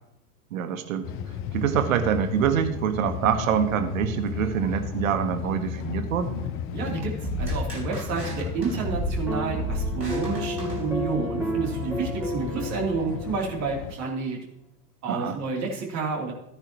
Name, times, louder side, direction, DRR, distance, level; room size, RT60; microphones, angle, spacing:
voice 1, 0.5-1.1 1.5-6.3 15.1-15.4, right 8 dB, 55° right, 9 dB, 1.6 m, -25 dB
sound 1, 1.0-13.9, left 7 dB, 25° left, 1.0 m, -34 dB
voice 2, 6.7-7.1 7.4-14.4 15.0-16.3, right 4 dB, 35° right, -1 dB, 3.2 m, -29 dB
sound 2, 7.2-11.4, right 1 dB, 90° right, 4.1 m, -33 dB
sound 3, 9.3-13.7, right 1 dB, 5° right, 2.9 m, -33 dB
15.0 x 9.8 x 3.0 m, 0.84 s
figure-of-eight pair, 95°, 48 cm